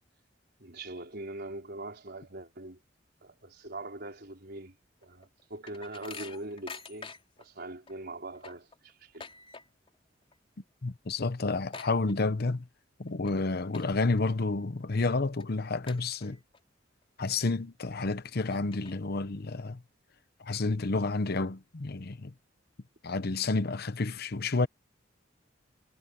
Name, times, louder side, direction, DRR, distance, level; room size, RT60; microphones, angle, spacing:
voice 1, 0.6-2.8 3.2-4.7 5.0-7.1 7.4-9.3, right 2 dB, 60° right, 4.6 m, -42 dB
sound 1, 5.0-7.5 7.9-8.0 8.2-10.0 10.2-10.6 10.9-11.0 11.2-12.6 13.1-13.3 13.7-14.2 14.7-14.8 15.4-15.5 15.9-16.6 17.0-17.1 17.8-17.9 18.3-19.2, left 4 dB, 30° left, 3.6 m, -47 dB
voice 2, 10.8-12.7 13.0-16.4 17.2-19.8 20.4-22.3 23.0-24.7, left 3 dB, 55° left, 0.8 m, -30 dB
head